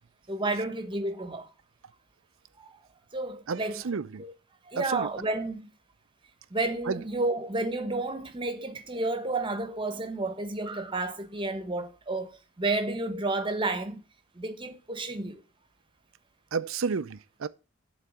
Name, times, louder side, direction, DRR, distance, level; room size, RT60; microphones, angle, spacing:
voice 1, 0.3-1.5 2.6-2.8 3.1-3.9 4.2-4.3 4.6-5.7 6.5-14.0 14.3-15.4, right 2 dB, 25° right, 1.0 m, -31 dB
voice 2, 3.5-4.2 4.8-5.0 6.9-7.0 16.5-17.5, right 5 dB, 65° right, 0.5 m, -31 dB
11.0 x 4.0 x 7.0 m
head